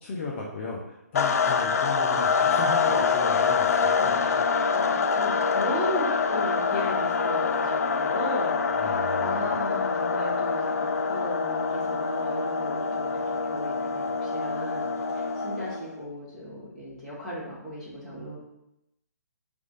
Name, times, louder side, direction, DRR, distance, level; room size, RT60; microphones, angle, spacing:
voice 1, 0.0-4.8 8.8-9.4, left 3 dB, 40° left, -3 dB, 0.8 m, -36 dB
sound 1, 1.2-15.9, left 5 dB, 65° left, 0.4 m, -25 dB
voice 2, 4.0-13.1 13.4-14.9 15.1-18.4, equal, 5° left, -11 dB, 1.7 m, -36 dB
4.7 x 2.6 x 4.0 m, 0.85 s
figure-of-eight pair, 135°, 9 cm